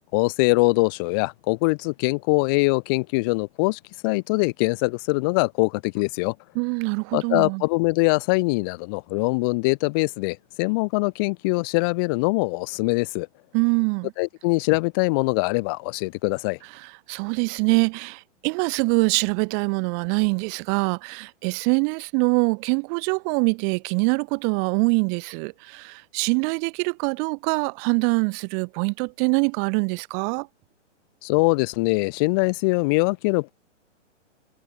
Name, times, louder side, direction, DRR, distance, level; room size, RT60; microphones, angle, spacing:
voice 1, 0.1-6.3 7.1-13.3 14.2-16.6 31.2-33.5, left 28 dB, 20° left, 0.9 m, -23 dB
voice 2, 6.5-7.6 13.5-14.1 16.8-30.5, right 40 dB or more, 10° right, 0.5 m, -24 dB
hypercardioid pair, 170°, 37 cm